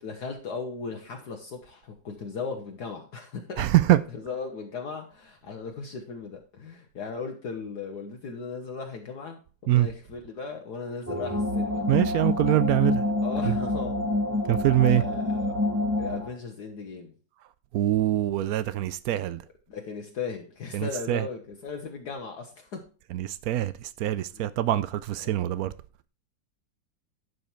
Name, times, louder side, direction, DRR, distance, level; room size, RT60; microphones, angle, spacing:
voice 1, 0.0-3.7 4.1-12.0 13.2-14.0 14.8-15.5 16.0-17.1 19.7-22.9 24.3-24.5 25.2-25.4, left 5 dB, 60° left, 1.5 m, -37 dB
voice 2, 3.6-4.0 9.7-9.9 11.9-13.0 13.4-13.5 14.5-15.0 17.7-19.4 20.7-21.2 23.1-23.7 24.0-25.7, right 14 dB, 80° right, 0.8 m, -24 dB
sound 1, 11.1-16.3, left 2 dB, 10° right, 1.0 m, -27 dB
11.0 x 5.3 x 4.3 m
omnidirectional pair, 2.1 m